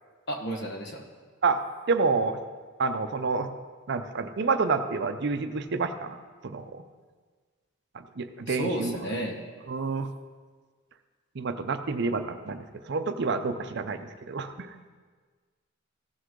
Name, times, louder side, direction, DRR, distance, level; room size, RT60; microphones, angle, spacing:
voice 1, 0.3-1.0 8.5-9.4, equal, 55° left, 3 dB, 1.2 m, -32 dB
voice 2, 1.9-2.4 2.8-3.5 3.9-6.2 6.4-6.8 7.9-9.0 9.7-10.1 11.3-14.9, right 4 dB, 55° right, 9 dB, 0.5 m, -28 dB
15.5 x 6.2 x 3.8 m, 1.5 s
head